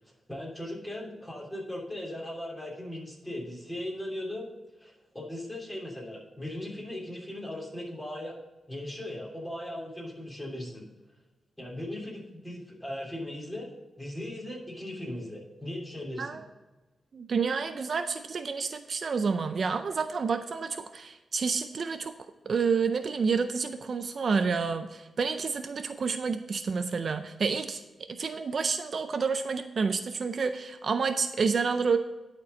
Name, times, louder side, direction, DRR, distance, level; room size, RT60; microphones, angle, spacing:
voice 1, 0.3-4.5 4.8-8.3 8.7-10.8 11.6-13.7 14.0-16.3, left 1 dB, 10° left, -4 dB, 3.3 m, -38 dB
voice 2, 17.1-22.1 22.5-27.8 28.1-32.0, right 5 dB, 55° right, 9 dB, 0.5 m, -29 dB
11.0 x 4.5 x 5.1 m, 1.2 s
wide cardioid pair, 105°, 0 cm